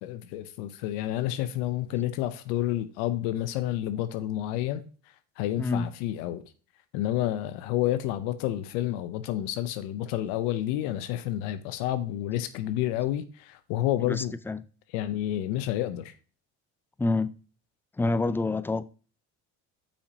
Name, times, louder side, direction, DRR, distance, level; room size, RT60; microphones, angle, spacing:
voice 1, 0.0-4.8 5.4-6.4 6.9-14.3 14.9-16.1, left 13 dB, 80° left, 0.8 m, -29 dB
voice 2, 14.1-14.6 17.0-17.3 18.0-18.8, left 3 dB, 5° left, 0.4 m, -27 dB
8.5 x 5.8 x 2.8 m
supercardioid pair, 90°, 36 cm